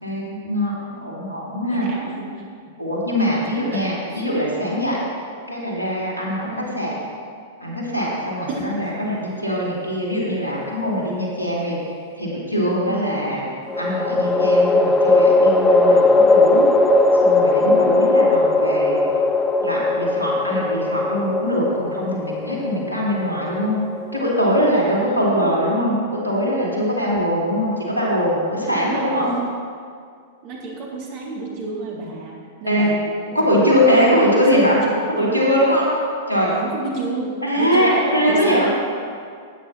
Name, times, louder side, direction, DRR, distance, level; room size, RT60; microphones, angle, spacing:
voice 1, 0.0-1.9 2.8-5.0 5.5-6.9 7.6-11.8 12.2-13.4 13.8-16.6 17.2-19.1 19.6-23.8 24.1-29.3 32.7-32.9 33.3-34.8 35.1-35.9 36.3-36.5 37.4-38.7, equal, 90° left, -5 dB, 2.9 m, -22 dB
voice 2, 1.6-2.5 3.7-3.9 4.1-4.2 6.4-6.8 8.5-9.0 12.8-13.3 17.6-18.0 25.0-25.9 28.8-29.3 30.4-33.0 33.4-35.5 36.5-37.3 37.6-37.9 38.3-38.7, right 3 dB, 45° right, -3 dB, 2.6 m, -31 dB
sound 1, 10.6-11.4 13.7-25.0, left 2 dB, 10° left, 0.7 m, -18 dB
15.5 x 9.0 x 3.0 m, 2.2 s
figure-of-eight pair, 100°, 0 cm